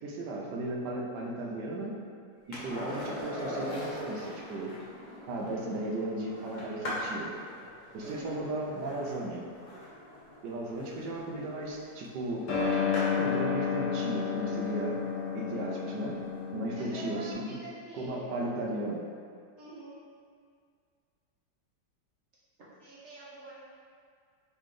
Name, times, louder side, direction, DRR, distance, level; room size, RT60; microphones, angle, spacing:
voice 1, 0.0-1.9 2.5-4.7 5.3-7.3 7.9-9.4 10.4-12.5 13.2-15.0 15.3-16.2 16.5-17.6 17.9-19.0, right 2 dB, 75° right, -1 dB, 1.2 m, -35 dB
Skateboard, 2.5-13.4 15.9-16.0, left 1 dB, 45° left, 0.6 m, -41 dB
voice 2, 8.0-8.4 16.8-18.4 19.6-19.9 22.8-23.6, right 2 dB, 50° right, -8 dB, 1.1 m, -45 dB
sound 1, 12.5-17.3, left 6 dB, 75° left, 1.4 m, -31 dB
3.8 x 3.7 x 3.2 m, 2.1 s
omnidirectional pair, 1.9 m